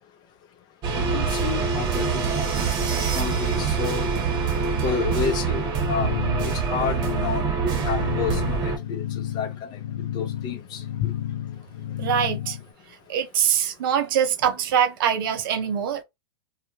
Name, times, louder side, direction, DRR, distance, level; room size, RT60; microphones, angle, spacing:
sound 1, 0.8-8.8, right 5 dB, 35° right, 0.9 m, -25 dB
voice 1, 1.0-2.4 3.1-4.1 4.8-6.2 6.4-9.0 9.3-9.8 10.1-11.1, left 6 dB, 35° left, 0.6 m, -30 dB
sound 2, 6.0-12.7, left 11 dB, 85° left, 0.7 m, -32 dB
voice 2, 12.0-12.6 13.1-16.0, right 8 dB, 60° right, 0.6 m, -23 dB
2.3 x 2.1 x 2.8 m
hypercardioid pair, 115°, 13 cm